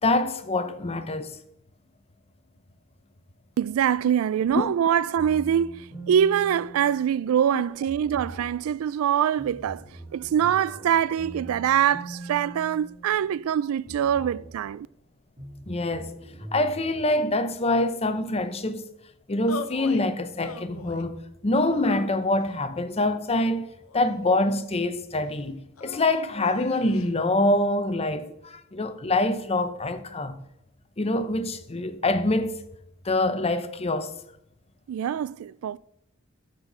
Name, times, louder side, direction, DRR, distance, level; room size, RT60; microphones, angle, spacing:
voice 1, 0.0-1.3 4.5-4.7 7.5-7.6 15.7-16.1 16.5-18.8 19.3-21.2 21.4-23.7 23.9-30.4 31.0-32.5 33.0-34.1, left 2 dB, 30° left, 0.7 m, -25 dB
voice 2, 3.6-9.9 10.1-14.9 34.9-35.8, right 9 dB, 85° right, 0.3 m, -24 dB
sound 1, 5.2-7.4 7.9-8.7 9.4-13.5 13.9-14.7 15.4-17.2, right 2 dB, 40° right, 2.2 m, -43 dB
sound 2, 19.5-20.1 20.4-21.1 21.7-22.6 23.4-24.4 25.8-27.1, left 5 dB, 85° left, 0.7 m, -40 dB
13.5 x 4.4 x 6.0 m
head